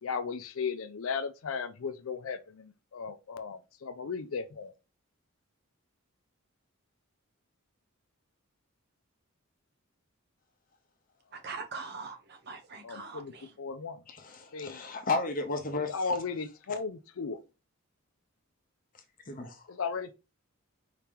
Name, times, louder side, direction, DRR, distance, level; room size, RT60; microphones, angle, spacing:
voice 1, 0.0-4.7 12.8-14.0 14.5-14.8 15.9-17.4 19.7-20.1, left 5 dB, 75° left, 0.5 m, -36 dB
voice 2, 11.3-13.5, right 4 dB, 50° right, 0.9 m, -42 dB
voice 3, 14.1-16.2 19.3-19.7, left 3 dB, 40° left, 0.9 m, -33 dB
4.8 x 2.9 x 3.5 m
head